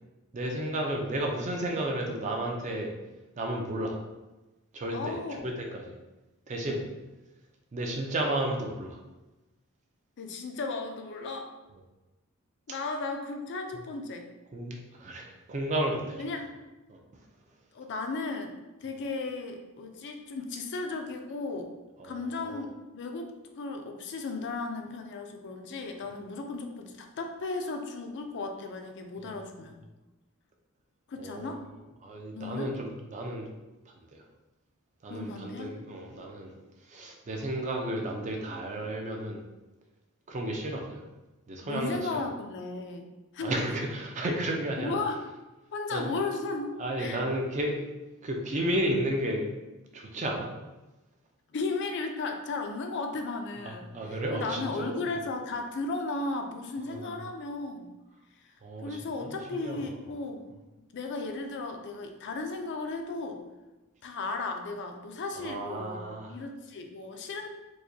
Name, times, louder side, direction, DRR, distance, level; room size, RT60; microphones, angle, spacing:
voice 1, 0.3-2.9 3.4-4.0 4.7-5.2 5.4-5.9 6.5-6.9 7.7-9.0 14.5-16.2 16.9-17.0 22.0-22.6 29.2-29.3 31.2-31.5 32.0-33.5 34.1-34.2 35.0-36.5 36.9-39.4 40.3-41.0 41.5-42.2 43.4-45.0 45.9-46.1 46.8-47.8 48.2-49.5 49.9-50.5 53.7-55.2 56.9-57.2 58.6-59.9 65.4-66.3, right 1 dB, 35° right, 1 dB, 0.4 m, -33 dB
voice 2, 4.9-5.5 10.2-11.5 12.7-14.3 16.2-16.6 17.7-21.7 22.0-29.8 31.1-31.6 32.3-32.8 35.1-35.7 41.6-43.6 44.8-45.2 45.7-47.2 51.5-57.9 58.8-60.4 60.9-63.4 64.0-66.0 66.3-67.5, left 3 dB, 55° left, 4 dB, 0.4 m, -35 dB
4.7 x 2.2 x 2.7 m, 1.1 s
head